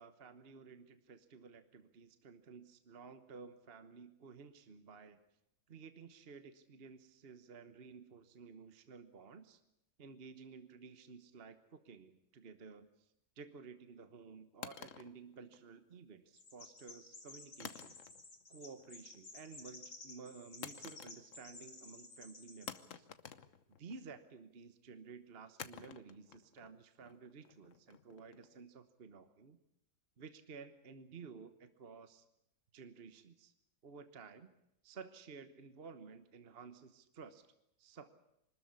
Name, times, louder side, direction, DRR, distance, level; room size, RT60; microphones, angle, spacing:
voice 1, 0.0-5.2 5.7-9.6 10.0-12.9 13.4-18.0 18.5-23.1 23.8-29.6 30.2-32.2 32.7-33.5 33.8-34.5 34.8-37.5 37.8-38.1, right 5 dB, 40° right, 10 dB, 1.2 m, -54 dB
sound 1, 14.6-16.0 17.6-18.4 18.8-19.2 20.6-21.6 21.9-22.0 22.7-24.2 25.6-28.6, left 7 dB, 55° left, 1.3 m, -51 dB
Chirp tweet, 16.3-22.9, left 3 dB, 85° left, 3.7 m, -54 dB
25.0 x 13.5 x 9.7 m, 0.83 s
omnidirectional pair, 1.7 m